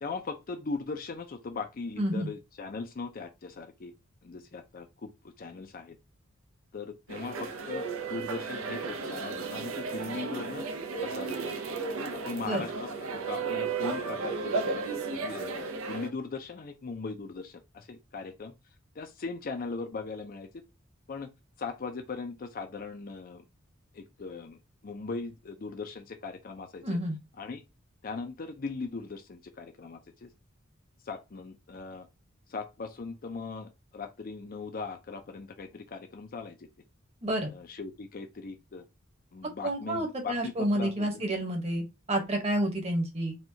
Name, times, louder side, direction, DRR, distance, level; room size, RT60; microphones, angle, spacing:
voice 1, 0.0-3.9 4.2-5.1 5.4-6.0 6.7-10.7 11.0-11.6 12.1-12.9 13.3-14.8 15.1-18.5 19.0-20.6 21.1-21.3 21.6-23.4 23.9-27.0 27.4-27.6 28.0-30.3 31.1-32.1 32.5-36.7 37.5-38.8 39.3-41.2, left 4 dB, 45° left, 0.5 m, -39 dB
voice 2, 2.0-2.3 12.5-12.6 26.8-27.2 37.2-37.5 39.6-43.4, right 1 dB, 30° right, 1.0 m, -29 dB
sound 1, 7.1-16.1, right 4 dB, 85° right, 0.7 m, -34 dB
4.3 x 2.3 x 2.8 m
head